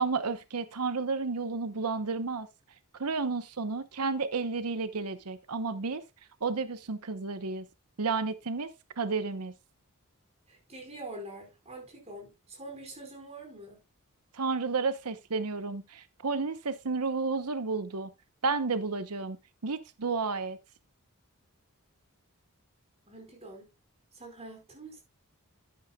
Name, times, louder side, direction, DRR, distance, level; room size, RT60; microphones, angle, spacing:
voice 1, 0.0-2.5 3.0-6.0 6.4-7.6 8.0-8.7 9.0-9.5 14.3-18.1 18.4-19.4 19.6-20.6, right 4 dB, 90° right, 1.0 m, -31 dB
voice 2, 10.5-13.8 23.1-23.7 24.1-25.0, right 2 dB, 30° right, 4.6 m, -45 dB
11.5 x 11.0 x 2.3 m
head